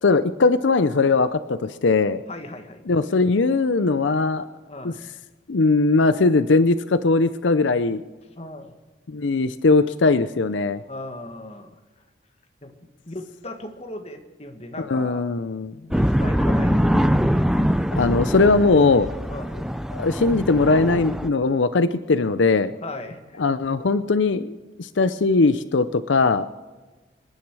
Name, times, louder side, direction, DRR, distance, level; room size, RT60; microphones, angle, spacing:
voice 1, 0.0-2.2 2.9-4.5 4.8-4.9 5.5-8.0 9.1-10.8 14.8-15.8 17.9-19.1 19.9-22.7 23.4-26.5, left 3 dB, 85° left, 13 dB, 0.6 m, -20 dB
voice 2, 2.3-2.8 4.7-5.0 8.4-8.7 10.9-11.8 12.6-12.8 13.1-15.3 15.9-17.1 19.3-19.6 22.8-23.4, left 1 dB, 35° left, 5 dB, 1.8 m, -37 dB
sound 1, 15.9-21.3, equal, 5° right, 0.5 m, -23 dB
26.5 x 10.5 x 4.8 m, 1.3 s
head